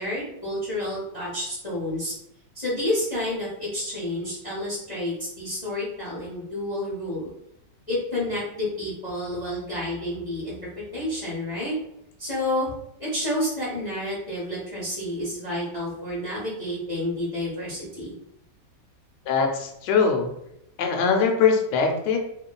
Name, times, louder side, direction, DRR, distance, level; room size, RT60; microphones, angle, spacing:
voice 1, 0.0-2.1 2.5-7.3 7.9-10.6 10.9-11.7 12.2-12.7 13.0-18.2, left 1 dB, 35° left, -8 dB, 0.6 m, -29 dB
voice 2, 19.3-20.3 20.8-22.2, left 5 dB, 80° left, 2 dB, 1.2 m, -22 dB
2.9 x 2.3 x 2.2 m, 0.78 s
omnidirectional pair, 1.9 m